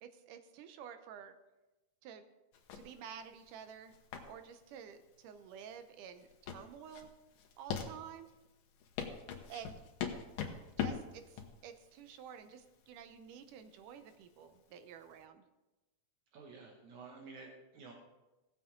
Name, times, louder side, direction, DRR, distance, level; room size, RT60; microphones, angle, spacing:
voice 1, 0.0-1.3 2.0-2.2 2.7-3.9 4.3-7.1 7.6-8.3 9.5-9.8 10.8-15.5, right 8 dB, 85° right, 9 dB, 2.4 m, -51 dB
sound 1, 2.5-15.2, left 7 dB, 85° left, 2.7 m, -43 dB
voice 2, 16.3-17.9, right 4 dB, 70° right, 1 dB, 2.4 m, -51 dB
17.0 x 7.3 x 3.7 m, 1.0 s
omnidirectional pair, 3.6 m